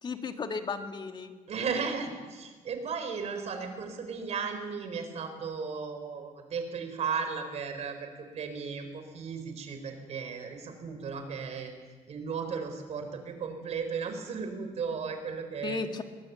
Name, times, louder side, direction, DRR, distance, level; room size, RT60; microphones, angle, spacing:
voice 1, 0.0-1.3 15.6-16.0, left 4 dB, 35° left, 6 dB, 1.8 m, -34 dB
voice 2, 1.5-11.7 12.1-16.0, right 5 dB, 55° right, 6 dB, 4.0 m, -35 dB
23.0 x 19.0 x 6.9 m, 1.4 s
cardioid pair, 135°, 13 cm